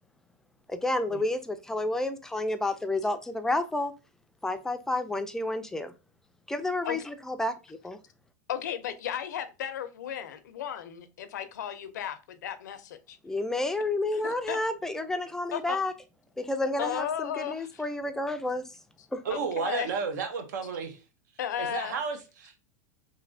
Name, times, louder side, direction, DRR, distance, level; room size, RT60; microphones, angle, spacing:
voice 1, 0.7-3.9 4.4-5.9 6.5-8.0 13.2-15.9 16.4-18.7 19.1-19.2, left 2 dB, 5° left, 0.3 m, -30 dB
voice 2, 8.5-13.2 14.2-14.6 15.0-15.1 15.5-15.8 16.8-17.8 19.3-19.9 21.4-21.9, left 9 dB, 85° left, 0.5 m, -35 dB
voice 3, 19.2-21.0 21.6-22.6, right 5 dB, 85° right, 0.8 m, -32 dB
3.1 x 2.6 x 2.6 m
supercardioid pair, 135°, 9 cm